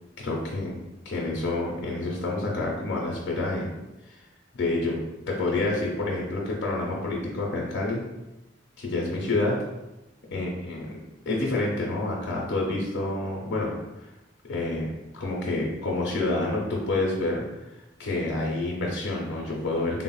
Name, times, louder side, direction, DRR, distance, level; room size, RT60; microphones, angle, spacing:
voice 1, 0.2-0.8 1.1-3.7 4.1-4.2 4.5-5.0 5.3-8.0 8.8-9.6 10.3-11.0 11.3-13.8 14.5-17.4 18.0-20.0, left 2 dB, 65° left, -2 dB, 0.5 m, -28 dB
3.5 x 2.0 x 2.3 m, 0.96 s
head